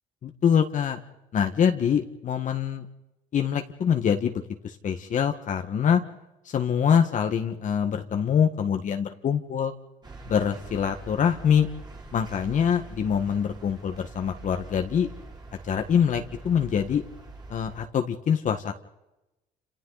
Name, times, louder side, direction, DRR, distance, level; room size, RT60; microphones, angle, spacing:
voice 1, 0.2-1.0 1.3-2.8 3.3-6.0 6.4-9.7 10.3-11.7 12.1-15.1 15.7-17.0 17.5-18.7, left 8 dB, 50° left, 5 dB, 1.6 m, -24 dB
sound 1, 10.0-17.9, right 3 dB, 25° right, 3.5 m, -44 dB
28.5 x 27.5 x 4.1 m, 0.96 s
cardioid pair, 110°, 17 cm